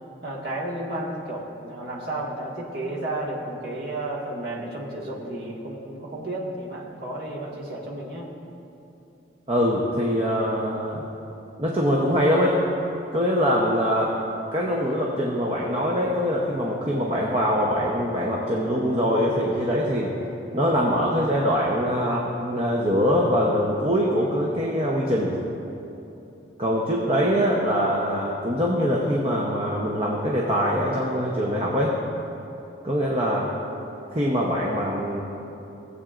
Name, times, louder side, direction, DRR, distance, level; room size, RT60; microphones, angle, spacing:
voice 1, 0.2-8.3, right 1 dB, 55° right, -5 dB, 1.7 m, -32 dB
voice 2, 9.5-11.0 11.6-12.6 13.1-14.1 14.5-20.1 20.5-25.3 26.6-32.0 32.8-33.5 34.1-35.2, equal, 30° right, -3 dB, 0.8 m, -23 dB
17.5 x 8.1 x 2.5 m, 3.0 s
head